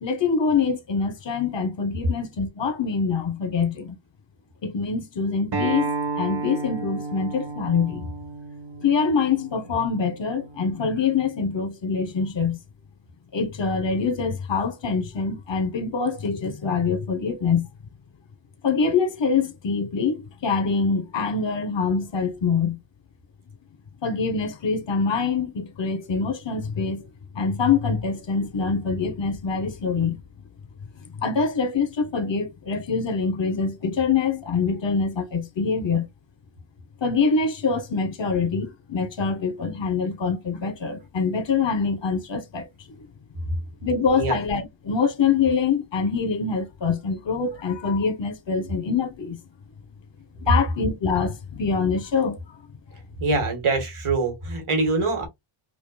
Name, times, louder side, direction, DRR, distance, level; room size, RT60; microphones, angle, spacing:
voice 1, 0.0-4.0 4.6-5.9 6.2-8.1 8.8-12.6 13.3-17.7 18.6-22.8 24.0-27.1 27.3-30.2 31.1-36.1 37.0-42.7 43.8-49.4 50.4-52.6, left 5 dB, 60° left, 1.1 m, -24 dB
Acoustic guitar, 5.5-10.7, right 3 dB, 50° right, 1.0 m, -32 dB
voice 2, 53.2-55.3, right 3 dB, 80° right, 1.8 m, -24 dB
5.2 x 2.8 x 2.3 m
wide cardioid pair, 125°, 49 cm